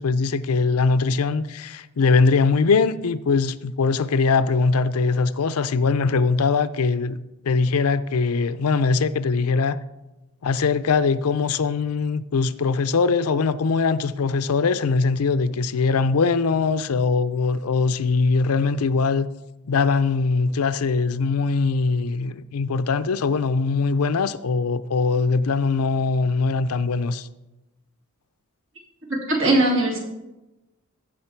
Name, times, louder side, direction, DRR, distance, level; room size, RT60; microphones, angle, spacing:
voice 1, 0.0-7.2 7.4-9.8 10.4-19.3 19.7-27.3, left 4 dB, 85° left, 0.5 m, -21 dB
voice 2, 29.1-30.0, right 2 dB, 60° right, 2.7 m, -20 dB
15.5 x 6.3 x 4.5 m
head